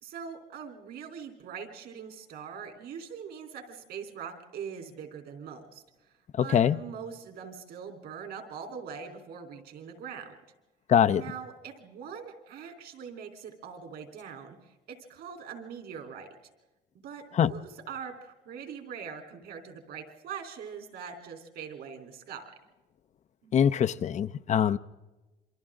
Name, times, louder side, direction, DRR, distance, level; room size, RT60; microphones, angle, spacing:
voice 1, 0.0-5.8 6.4-10.4 11.2-16.3 17.0-22.4 23.4-23.5, right 7 dB, 70° right, 3.8 m, -42 dB
voice 2, 10.9-11.2 17.4-17.5 23.5-24.8, left 9 dB, 45° left, 0.6 m, -23 dB
28.0 x 24.5 x 3.8 m
cardioid pair, 110°, 17 cm